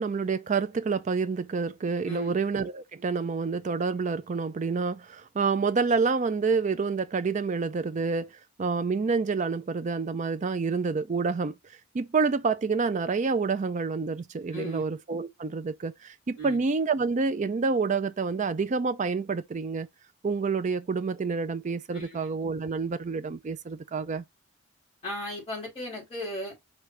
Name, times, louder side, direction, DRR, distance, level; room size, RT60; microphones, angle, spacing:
voice 1, 0.0-8.3 8.6-11.5 11.9-15.9 16.3-19.9 20.2-24.2, right 4 dB, 35° right, 0.4 m, -28 dB
voice 2, 2.1-2.4 14.5-14.8 16.4-16.6 21.9-22.2 25.0-26.5, left 1 dB, 30° left, 3.2 m, -36 dB
4.9 x 2.7 x 3.3 m
head